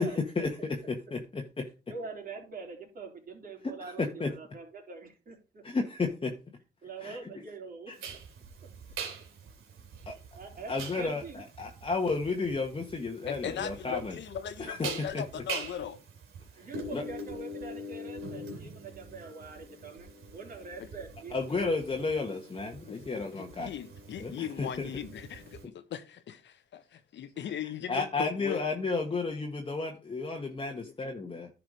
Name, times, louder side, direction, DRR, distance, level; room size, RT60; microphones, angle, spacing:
voice 1, 0.0-1.6 3.6-4.3 5.6-6.3 7.0-7.2 7.9-8.0 10.1-10.2 10.7-14.1 14.6-14.9 15.1-15.2 16.9-17.0 21.3-23.7 24.2-24.9 27.9-31.5, left 3 dB, 25° left, 1.5 m, -32 dB
voice 2, 1.9-4.1 4.4-5.4 6.8-7.9 10.4-11.4 16.6-21.3, right 4 dB, 45° right, 3.8 m, -44 dB
sound 1, 8.0-25.6, right 3 dB, 80° right, 3.1 m, -43 dB
voice 3, 13.3-16.0 20.8-20.9 22.9-28.6 30.8-30.9, left 9 dB, 65° left, 1.2 m, -38 dB
10.5 x 4.9 x 4.9 m
cardioid pair, 90°, 20 cm